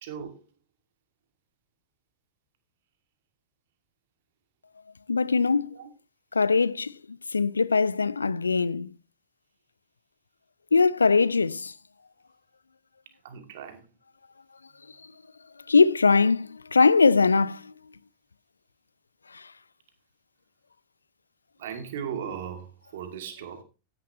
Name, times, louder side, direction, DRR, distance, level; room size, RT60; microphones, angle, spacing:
voice 1, 0.0-0.4 5.7-5.9 13.2-13.8 21.6-23.6, right 8 dB, 55° right, 2.3 m, -37 dB
voice 2, 5.1-5.8 6.3-8.9 10.7-11.7 15.7-17.7 19.3-19.5, left 4 dB, 75° left, 0.5 m, -22 dB
14.0 x 10.0 x 3.1 m
figure-of-eight pair, 90°, 0 cm